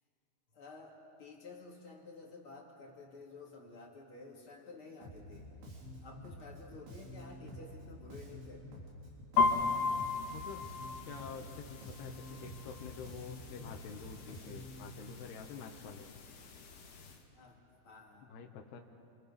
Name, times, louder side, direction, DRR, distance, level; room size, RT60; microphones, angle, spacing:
voice 1, 0.5-5.5 6.0-8.8 17.3-18.4, left 3 dB, 35° left, -1 dB, 2.6 m, -52 dB
Bass guitar, 5.0-14.9, equal, 65° right, 5.6 m, -49 dB
sound 1, 9.4-17.2, left 4 dB, 60° left, 3.6 m, -37 dB
voice 2, 10.3-10.7 11.0-16.1 18.3-18.8, left 6 dB, 75° left, 1 dB, 3.2 m, -47 dB
28.0 x 27.0 x 5.6 m, 2.9 s
omnidirectional pair, 5.0 m